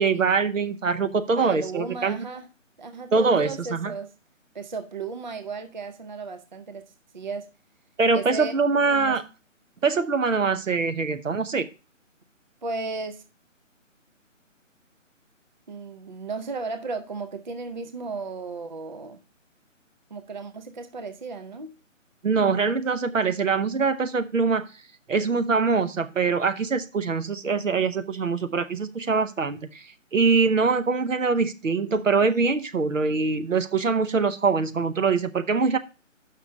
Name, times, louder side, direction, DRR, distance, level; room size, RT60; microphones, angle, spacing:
voice 1, 0.0-2.2 3.1-3.9 8.0-9.2 9.8-11.7 22.2-24.6 25.1-29.9 30.1-35.8, right 4 dB, 75° right, 0.9 m, -23 dB
voice 2, 1.3-2.5 2.8-4.1 4.5-7.5 8.1-8.5 8.9-9.3 12.6-13.3 15.7-19.2 20.1-21.8, right 4 dB, 35° right, 0.5 m, -35 dB
6.1 x 5.8 x 5.3 m
figure-of-eight pair, 150°, 39 cm